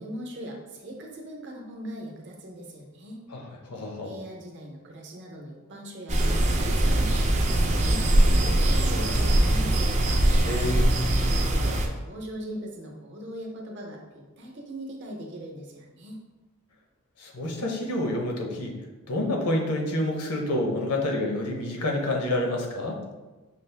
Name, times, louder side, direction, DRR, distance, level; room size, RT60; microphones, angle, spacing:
voice 1, 0.0-3.2 4.0-9.9 11.1-16.2, right 1 dB, 50° right, 0 dB, 0.7 m, -40 dB
voice 2, 3.6-4.1 10.4-10.9 17.2-18.8 19.1-23.0, left 1 dB, 85° left, 1 dB, 0.8 m, -28 dB
sound 1, 6.1-11.9, right 1 dB, 30° right, 0.4 m, -22 dB
5.3 x 2.4 x 3.3 m, 1.2 s
head